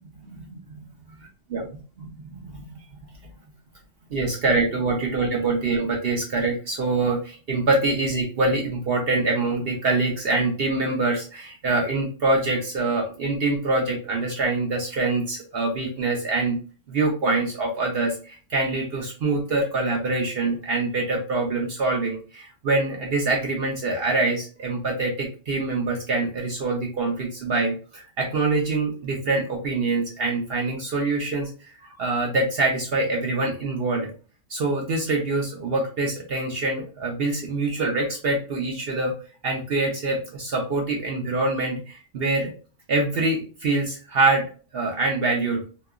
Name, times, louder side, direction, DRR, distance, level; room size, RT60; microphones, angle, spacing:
voice 1, 2.0-2.7 4.1-16.6 16.9-31.5 31.8-34.1 34.5-39.1 39.4-42.5 42.9-44.5 44.7-45.6, right 3 dB, 60° right, -1 dB, 0.7 m, -25 dB
2.9 x 2.2 x 2.3 m, 0.36 s
omnidirectional pair, 1.3 m